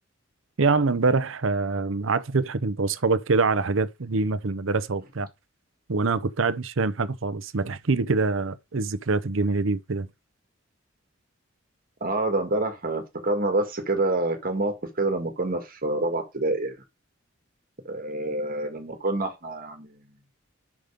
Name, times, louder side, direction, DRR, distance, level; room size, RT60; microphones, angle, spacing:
voice 1, 0.6-5.3 5.9-10.1, right 3 dB, 75° right, 0.7 m, -25 dB
voice 2, 12.0-16.8 17.9-20.0, right 2 dB, 50° right, 1.8 m, -27 dB
6.1 x 5.2 x 5.0 m
head